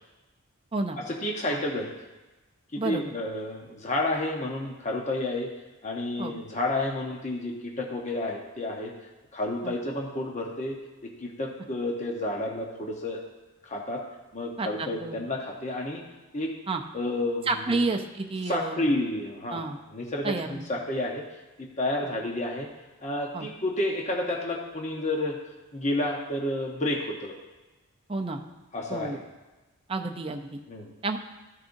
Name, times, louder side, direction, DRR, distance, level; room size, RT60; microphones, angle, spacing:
voice 1, 1.0-1.9 2.7-5.5 5.8-8.9 9.3-10.8 11.2-13.2 13.6-14.0 14.3-16.0 16.3-16.5 16.9-17.8 18.5-19.7 19.9-21.2 21.6-22.7 23.0-25.4 25.7-27.3 28.7-29.2 30.7-30.9, left 1 dB, 30° left, 0 dB, 0.9 m, -30 dB
voice 2, 14.6-15.2 16.7-16.8 17.5-18.9 19.5-19.8 20.2-20.6 23.3-23.5 28.1-28.4 28.9-29.2 29.9-30.6 31.0-31.2, right 3 dB, 25° right, 4 dB, 0.5 m, -30 dB
14.0 x 6.6 x 2.7 m, 1.1 s
head